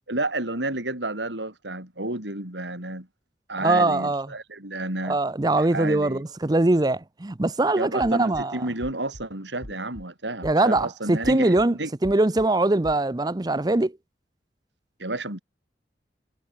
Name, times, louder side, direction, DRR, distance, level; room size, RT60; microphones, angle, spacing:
voice 1, 0.1-3.1 3.5-5.2 5.6-6.2 7.8-11.9 15.0-15.4, right 2 dB, 90° right, 6.7 m, -31 dB
voice 2, 3.6-4.3 5.0-8.6 10.4-11.8 12.0-13.9, right 2 dB, 20° right, 0.6 m, -22 dB
sound 1, 8.0-8.4 8.8-9.2 9.6-10.0 10.4-10.8 11.2-11.7 12.0-12.5 12.8-13.0, equal, 85° left, 4.3 m, -41 dB
head